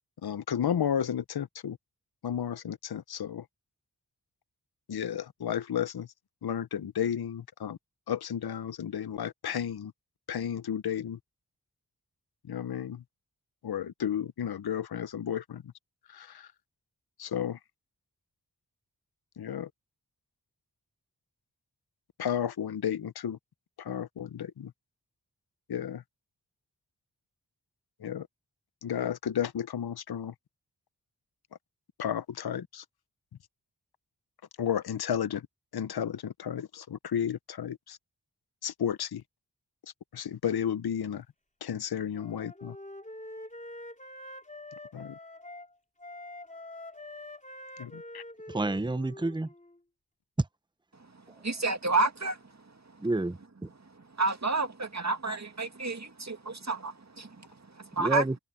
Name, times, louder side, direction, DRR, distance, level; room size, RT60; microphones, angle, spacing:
voice 1, 0.2-1.8 2.2-3.5 4.9-6.1 6.4-7.8 8.1-9.9 10.3-11.2 12.5-13.0 13.6-15.7 16.1-16.5 17.2-17.6 19.4-19.7 22.2-23.4 23.8-24.7 25.7-26.0 28.0-28.3 28.8-30.3 32.0-32.8 34.6-35.5 35.7-38.0 38.6-39.2 39.8-41.2 41.6-42.8 44.9-45.2 47.8-48.2, left 9 dB, 70° left, 0.8 m, -33 dB
Wind instrument woodwind instrument, 42.1-45.7 46.0-49.8, left 1 dB, 20° left, 3.6 m, -45 dB
voice 2, 48.5-49.5 50.4-50.5 53.0-53.7 58.0-58.4, right 2 dB, 10° right, 0.9 m, -29 dB
voice 3, 51.4-52.4 54.2-57.4 57.8-58.2, right 3 dB, 45° right, 2.4 m, -30 dB
cardioid pair, 40°, 40 cm